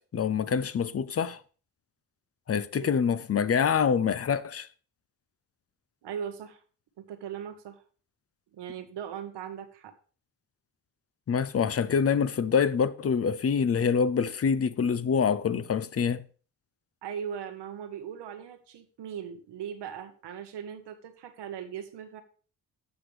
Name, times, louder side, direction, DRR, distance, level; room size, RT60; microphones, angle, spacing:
voice 1, 0.1-1.4 2.5-4.7 11.3-16.2, left 6 dB, 35° left, 0.6 m, -26 dB
voice 2, 6.0-6.6 7.0-7.8 8.5-9.9 17.0-22.2, right 8 dB, 80° right, 1.3 m, -39 dB
15.5 x 6.1 x 3.3 m
cardioid pair, 90°, 41 cm